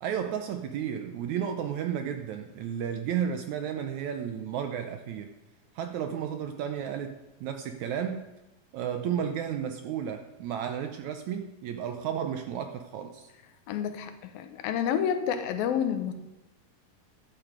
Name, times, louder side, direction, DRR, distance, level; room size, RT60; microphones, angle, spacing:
voice 1, 0.0-5.3 5.8-8.3 8.7-13.3, right 8 dB, 75° right, 6 dB, 1.7 m, -33 dB
voice 2, 13.7-16.1, left 8 dB, 90° left, 9 dB, 2.8 m, -29 dB
13.0 x 10.5 x 5.1 m, 1.0 s
omnidirectional pair, 4.0 m